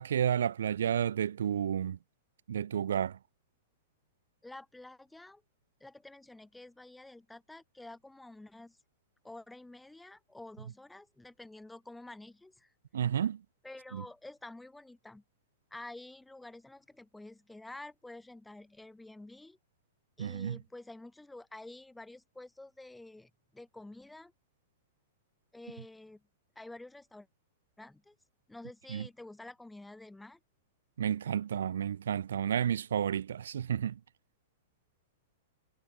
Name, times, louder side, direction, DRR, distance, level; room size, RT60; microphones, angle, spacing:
voice 1, 0.0-2.0 2.5-3.2 12.9-13.4 13.9-14.0 20.2-20.6 28.9-29.1 31.0-34.0, right 9 dB, 65° right, 2.5 m, -31 dB
voice 2, 4.4-5.4 5.8-8.8 9.2-12.7 13.6-15.2 15.7-19.6 20.2-24.3 25.5-26.2 26.6-27.3 27.8-28.2 28.5-30.4, left 2 dB, 5° left, 5.4 m, -49 dB
figure-of-eight pair, 100°, 0 cm